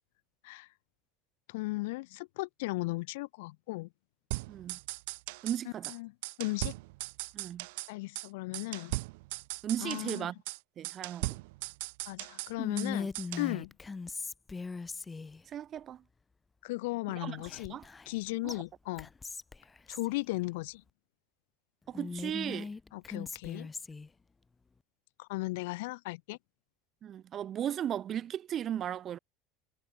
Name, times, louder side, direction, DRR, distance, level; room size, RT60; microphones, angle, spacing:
voice 1, 1.5-3.9 5.9-6.7 7.9-8.9 9.8-10.3 12.1-13.1 13.4-13.7 16.6-17.8 18.1-19.1 19.9-20.8 22.9-23.7 25.2-26.4, left 22 dB, 75° left, 0.7 m, -36 dB
sound 1, 4.3-5.6 5.8-6.0 6.2-7.9 8.2-8.3 8.5-10.2 10.5-10.6 10.8-12.9 13.1-13.5, right 24 dB, 70° right, 1.1 m, -38 dB
voice 2, 4.5-4.8 5.4-5.9 7.3-7.7 9.6-10.3 10.8-11.3 15.5-16.0 17.1-17.4 17.7-17.8 18.4-18.5 21.9-22.7 27.0-29.2, right 10 dB, 40° right, 1.7 m, -36 dB
Whispering, 12.6-15.4 17.5-18.2 18.5-18.6 19.0-20.1 21.9-24.1, left 4 dB, 20° left, 3.8 m, -39 dB
hypercardioid pair, 85°, 0 cm